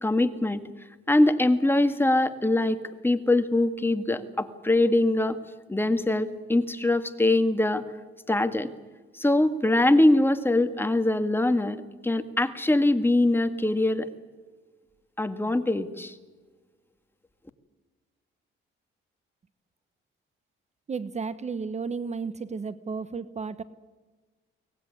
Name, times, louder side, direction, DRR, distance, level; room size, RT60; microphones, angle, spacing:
voice 1, 0.0-0.6 1.1-5.4 5.7-7.8 8.3-8.7 9.2-14.1 15.2-16.1, left 1 dB, 10° left, 9 dB, 1.9 m, -23 dB
voice 2, 20.9-23.6, right 5 dB, 30° right, 14 dB, 1.0 m, -33 dB
23.5 x 19.0 x 9.7 m, 1.4 s
cardioid pair, 95°, 21 cm